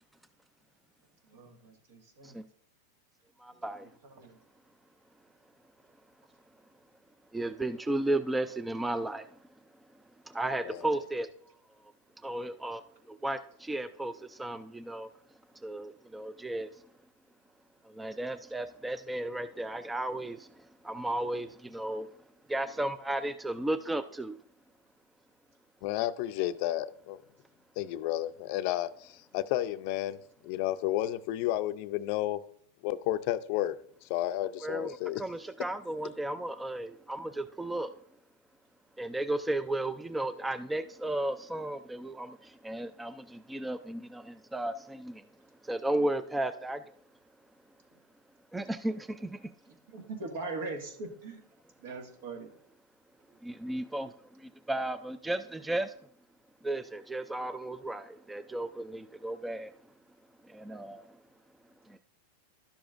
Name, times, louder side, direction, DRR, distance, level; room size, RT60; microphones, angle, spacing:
voice 1, 1.3-2.3 3.8-4.4 49.9-51.4 51.8-52.5, right 3 dB, 70° right, 1.8 m, -41 dB
voice 2, 3.4-3.9 7.3-9.3 10.3-11.3 12.2-12.8 13.1-15.1 15.6-16.7 17.9-20.5 20.8-22.1 22.5-24.4 34.6-37.9 39.0-45.2 45.6-46.8 48.5-49.5 53.4-55.9 56.6-59.7 60.5-61.1 61.9-62.0, right 1 dB, 5° right, 0.3 m, -34 dB
voice 3, 25.8-27.2 27.8-30.2 30.4-32.4 32.8-33.8 34.0-35.2, left 14 dB, 55° left, 0.4 m, -32 dB
11.5 x 7.0 x 2.5 m
hypercardioid pair, 125°, 0 cm